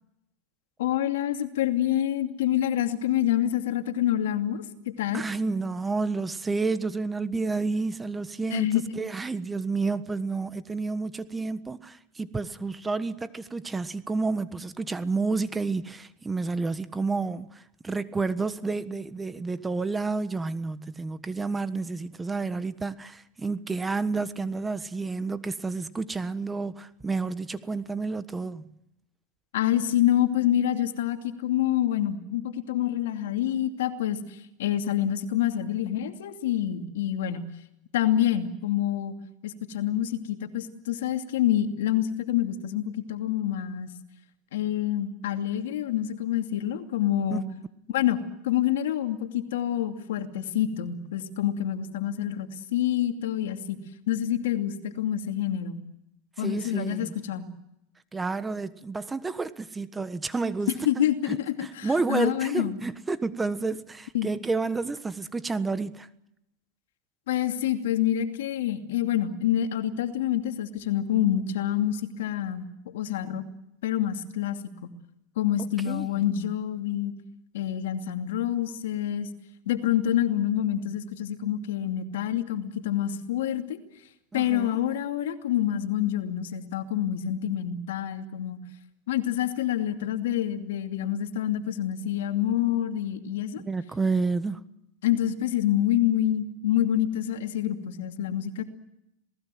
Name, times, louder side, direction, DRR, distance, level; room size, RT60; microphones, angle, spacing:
voice 1, 0.8-5.2 8.5-8.8 29.5-37.5 37.9-39.1 39.4-43.9 44.5-47.4 47.9-53.8 54.1-55.8 56.4-57.4 60.9-62.8 64.1-64.3 67.3-73.4 73.8-74.9 75.4-77.1 77.5-79.3 79.7-83.8 84.3-88.6 89.1-93.6 95.0-98.6, left 11 dB, 85° left, 2.6 m, -27 dB
voice 2, 5.1-28.7 47.3-47.4 56.4-57.2 58.1-66.1 75.9-76.2 84.3-84.8 93.6-94.6, right 4 dB, 15° right, 1.4 m, -30 dB
27.5 x 19.0 x 7.8 m
supercardioid pair, 115°, 0 cm